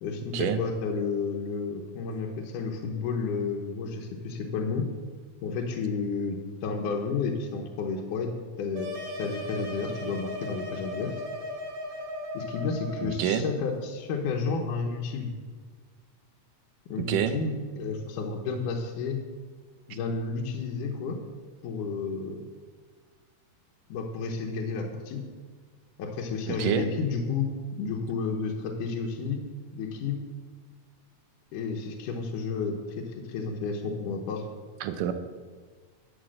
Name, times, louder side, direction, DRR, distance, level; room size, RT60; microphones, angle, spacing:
voice 1, 0.0-4.9 5.4-8.3 8.6-8.9 9.2-11.1 12.3-15.3 16.9-19.2 19.9-21.2 21.6-22.4 23.9-25.2 26.0-29.4 29.7-30.2 31.5-34.4, left 4 dB, 80° left, 1 dB, 2.5 m, -31 dB
sound 1, 8.7-13.2, left 1 dB, 65° right, 2.7 m, -37 dB
voice 2, 13.0-13.5 17.0-17.4 19.9-20.0 26.5-26.9 34.8-35.1, right 9 dB, 90° right, 9 dB, 2.4 m, -28 dB
11.5 x 6.3 x 7.6 m, 1.5 s
omnidirectional pair, 3.6 m